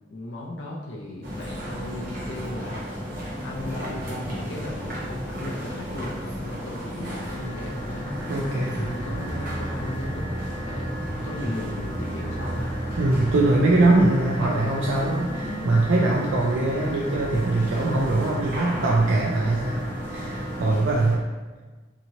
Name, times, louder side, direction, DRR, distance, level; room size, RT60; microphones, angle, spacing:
voice 1, 0.1-12.7 14.4-15.1, left 1 dB, 70° left, -3 dB, 0.4 m, -37 dB
sound 1, 1.2-21.2, equal, 50° right, 0.8 m, -34 dB
sound 2, 7.0-20.8, equal, 90° right, 0.9 m, -40 dB
voice 2, 8.3-8.8 13.0-19.8 20.1-21.2, right 2 dB, 70° right, -3 dB, 0.4 m, -22 dB
sound 3, 8.8-14.1, right 1 dB, ahead, 0.5 m, -34 dB
2.9 x 2.8 x 2.6 m, 1.3 s
head